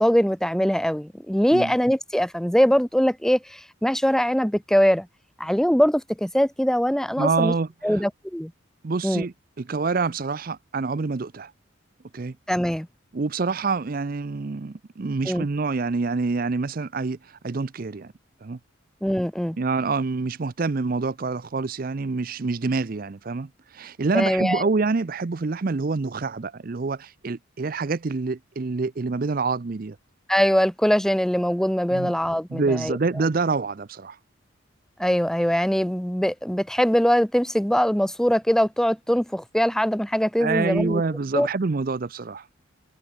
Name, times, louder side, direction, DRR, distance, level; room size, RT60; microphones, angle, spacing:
voice 1, 0.0-5.1 5.4-7.5 7.8-8.5 9.0-9.2 12.5-12.9 15.3-15.5 19.0-19.6 24.1-24.7 30.3-33.0 35.0-41.0 41.3-41.5, equal, ahead, 0.7 m, -22 dB
voice 2, 7.2-8.0 8.8-11.5 12.1-12.3 13.1-18.1 18.4-18.6 19.6-30.0 31.9-32.1 32.5-34.2 40.4-42.5, right 4 dB, 45° right, 0.5 m, -26 dB
head